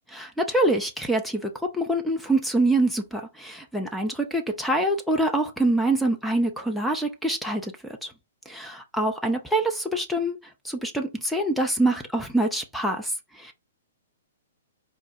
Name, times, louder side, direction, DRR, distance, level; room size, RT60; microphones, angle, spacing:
voice 1, 0.1-8.1 8.5-10.4 10.6-13.5, right 1 dB, ahead, 0.7 m, -25 dB
4.6 x 2.3 x 4.3 m
figure-of-eight pair, 115°, 0 cm